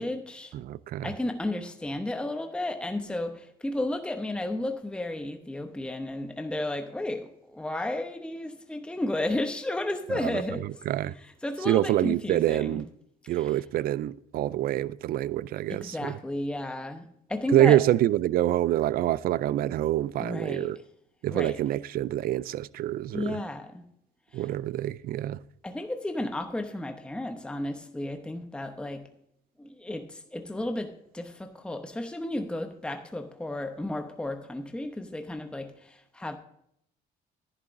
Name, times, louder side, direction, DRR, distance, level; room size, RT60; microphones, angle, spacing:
voice 1, 0.0-0.5 1.0-10.7 11.2-12.8 13.3-13.5 15.7-17.8 20.2-20.7 21.3-21.6 23.1-23.8 24.3-24.5 25.6-29.1 29.6-36.4, left 1 dB, 5° left, 0.9 m, -33 dB
voice 2, 0.5-1.1 10.2-10.3 10.9-11.2 11.7-12.9 13.3-16.2 17.5-20.8 21.2-23.4 24.3-25.4, right 13 dB, 60° right, 0.4 m, -26 dB
14.0 x 11.0 x 2.6 m
cardioid pair, 110°, 17 cm